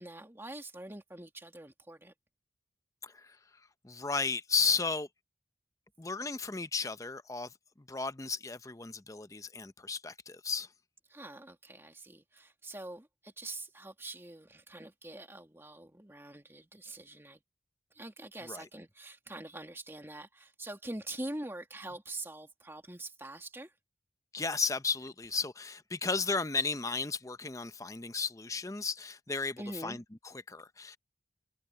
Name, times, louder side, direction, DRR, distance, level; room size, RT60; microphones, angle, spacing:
voice 1, 0.0-2.1 11.1-17.4 17.9-23.7 29.6-30.0, right 2 dB, 15° right, 2.2 m, -44 dB
voice 2, 3.8-5.1 6.0-7.5 7.9-10.7 18.5-18.6 24.3-31.0, left 4 dB, 15° left, 0.6 m, -34 dB
head